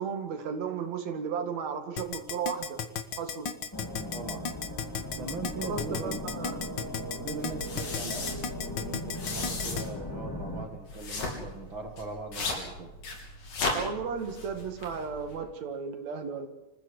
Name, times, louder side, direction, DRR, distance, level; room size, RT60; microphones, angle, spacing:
voice 1, 0.0-2.8 3.2-3.5 5.6-6.6 13.7-16.5, right 6 dB, 65° right, 6 dB, 3.1 m, -34 dB
Keyboard (musical), 2.0-9.8, left 7 dB, 50° left, 1.4 m, -34 dB
sound 1, 3.7-10.6, equal, 10° left, 1.8 m, -38 dB
voice 2, 4.1-4.5 5.2-6.2 7.2-12.9, right 3 dB, 45° right, 4 dB, 2.4 m, -40 dB
sound 2, 7.3-15.4, left 3 dB, 75° left, 5.3 m, -37 dB
26.5 x 15.0 x 8.0 m, 1.0 s
omnidirectional pair, 3.5 m